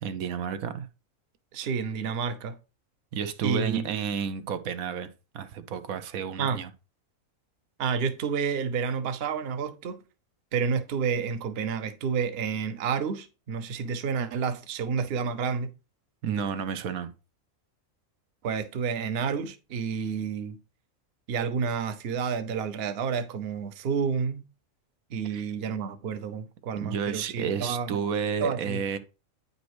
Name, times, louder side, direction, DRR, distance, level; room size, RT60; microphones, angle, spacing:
voice 1, 0.0-0.9 3.1-5.1 5.3-6.7 16.2-17.1 25.3-25.5 26.8-29.0, right 7 dB, 90° right, 1.2 m, -31 dB
voice 2, 1.5-2.6 3.4-3.8 6.4-6.6 7.8-10.0 10.5-15.7 18.4-20.6 21.3-24.4 25.1-28.0 28.4-28.8, right 6 dB, 55° right, 0.8 m, -30 dB
9.1 x 5.3 x 3.1 m
omnidirectional pair, 1.4 m